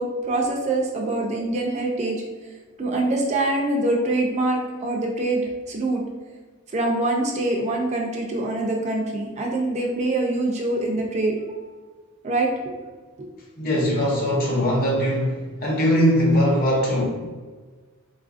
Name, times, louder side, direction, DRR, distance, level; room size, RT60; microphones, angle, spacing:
voice 1, 0.0-2.2 2.8-6.0 6.7-11.7 12.2-12.5 13.2-13.3, right 2 dB, 30° right, 0 dB, 0.4 m, -24 dB
voice 2, 13.6-17.0, equal, 45° left, -3 dB, 0.8 m, -21 dB
3.9 x 2.5 x 2.4 m, 1.4 s
head